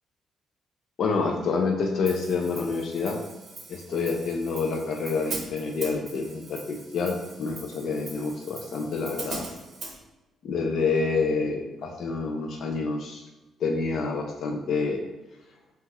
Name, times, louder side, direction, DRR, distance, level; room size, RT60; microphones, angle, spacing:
voice 1, 1.0-3.2 3.7-9.5 10.4-13.2 13.6-15.0, left 4 dB, 60° left, 2 dB, 0.3 m, -28 dB
Hi-hat, 2.1-10.0, right 3 dB, 55° right, 0.6 m, -41 dB
2.8 x 2.3 x 2.8 m, 1.0 s
cardioid pair, 90°, 0 cm